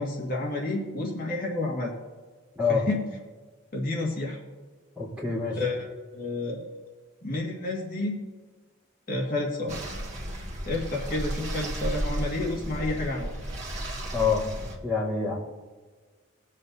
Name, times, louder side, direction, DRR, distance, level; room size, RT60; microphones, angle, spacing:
voice 1, 0.0-1.9 2.7-3.0 3.7-4.4 5.6-6.7 7.2-8.2 9.1-9.8 10.7-13.3, left 2 dB, 45° left, -2 dB, 1.8 m, -30 dB
voice 2, 4.9-5.6 14.1-14.4 14.8-15.3, left 5 dB, 5° right, -7 dB, 3.3 m, -26 dB
sound 1, 9.7-14.8, right 1 dB, 35° right, 1.9 m, -34 dB
20.0 x 7.6 x 2.7 m, 1.4 s
head